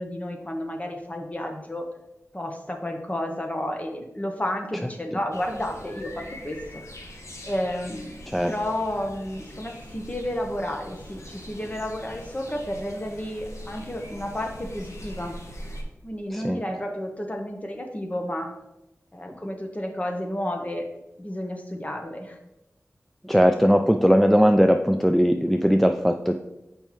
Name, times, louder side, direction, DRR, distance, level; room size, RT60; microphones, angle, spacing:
voice 1, 0.0-1.9 2.3-6.8 7.4-8.2 8.5-15.4 16.0-18.5 19.1-20.9 21.2-22.4, left 1 dB, 30° left, 3 dB, 1.0 m, -31 dB
sound 1, 5.3-15.8, equal, 70° left, 1.0 m, -42 dB
voice 2, 23.2-26.3, equal, 5° left, 5 dB, 0.3 m, -19 dB
7.2 x 5.4 x 3.1 m, 0.92 s
wide cardioid pair, 65°, 5 cm